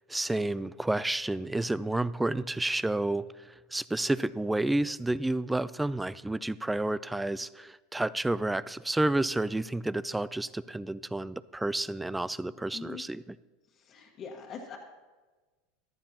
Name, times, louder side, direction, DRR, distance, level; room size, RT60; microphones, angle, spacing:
voice 1, 0.1-13.4, right 2 dB, 10° right, 18 dB, 0.4 m, -30 dB
voice 2, 13.7-14.8, left 5 dB, 40° left, -2 dB, 1.5 m, -43 dB
14.5 x 11.5 x 2.9 m, 1.3 s
hypercardioid pair, 100°, 0 cm